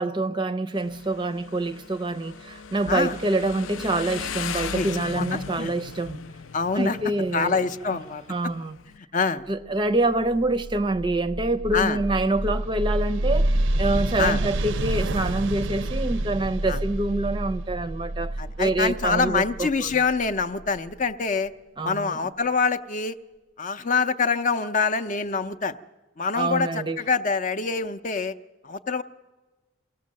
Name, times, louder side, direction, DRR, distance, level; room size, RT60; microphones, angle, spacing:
voice 1, 0.0-6.2 6.7-7.6 8.3-8.8 9.5-19.9 21.8-22.2 26.3-27.0, right 2 dB, 25° right, 0.5 m, -26 dB
Motorcycle, 0.7-9.0, left 6 dB, 80° left, 0.6 m, -37 dB
voice 2, 5.2-5.7 6.5-7.0 7.3-8.2 9.0-9.4 11.7-12.0 14.2-14.4 16.7-16.8 18.4-21.5 21.8-23.2 23.6-25.8 26.2-28.3 28.6-29.0, left 5 dB, 40° left, 0.6 m, -25 dB
sound 1, 10.1-20.9, right 1 dB, 65° right, 0.5 m, -28 dB
22.0 x 16.5 x 7.4 m
head